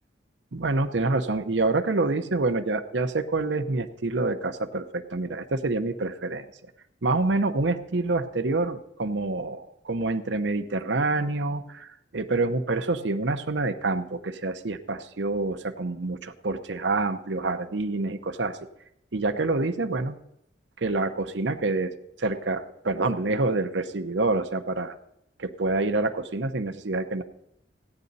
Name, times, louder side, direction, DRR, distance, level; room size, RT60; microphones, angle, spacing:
voice 1, 0.5-6.5 7.0-18.6 19.1-20.2 20.8-21.9 22.2-24.9 25.4-27.2, right 3 dB, 70° right, 8 dB, 0.8 m, -27 dB
16.5 x 9.7 x 4.0 m, 0.78 s
head